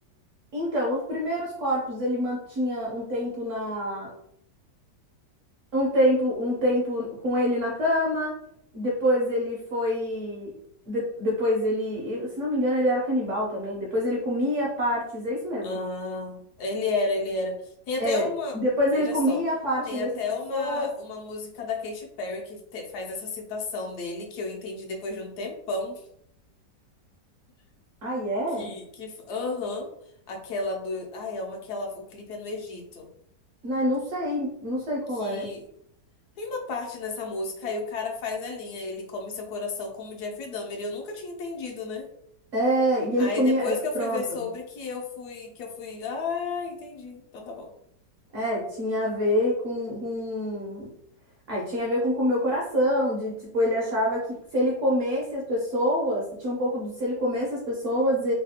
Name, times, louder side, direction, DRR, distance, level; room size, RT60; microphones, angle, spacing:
voice 1, 0.5-4.1 5.7-8.4 8.7-10.5 10.9-15.8 18.0-18.3 18.5-20.1 20.5-20.9 28.0-28.7 33.6-35.5 42.5-44.5 48.3-50.9 51.5-54.3 54.5-58.3, equal, 65° right, -3 dB, 0.8 m, -26 dB
voice 2, 15.6-17.5 17.9-18.6 18.9-19.4 19.9-26.0 28.6-29.9 30.3-33.1 35.1-35.6 36.4-42.1 43.2-47.7, left 3 dB, 75° left, 2 dB, 1.1 m, -33 dB
3.2 x 2.2 x 2.8 m, 0.72 s
omnidirectional pair, 1.9 m